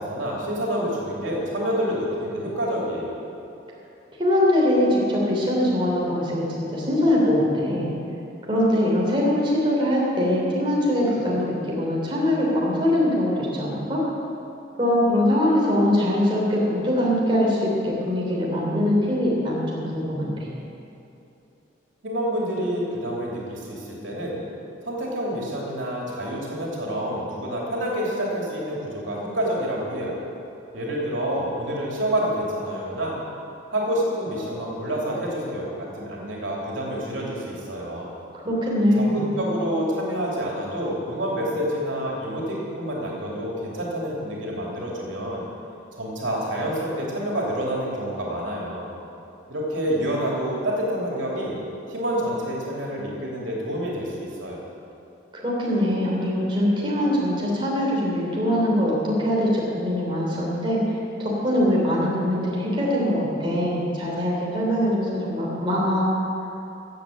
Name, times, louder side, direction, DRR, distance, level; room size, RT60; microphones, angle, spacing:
voice 1, 0.0-3.2 22.0-24.4 24.8-30.1 30.7-33.2 33.7-38.1 38.9-45.5 45.9-48.9 49.5-51.6 51.9-54.6, equal, 90° right, -3 dB, 3.0 m, -28 dB
voice 2, 4.2-7.9 8.5-14.0 14.8-20.5 38.4-39.2 55.3-60.8 61.2-66.1, left 1 dB, 25° right, -4 dB, 3.1 m, -22 dB
15.0 x 8.1 x 7.5 m, 2.8 s
head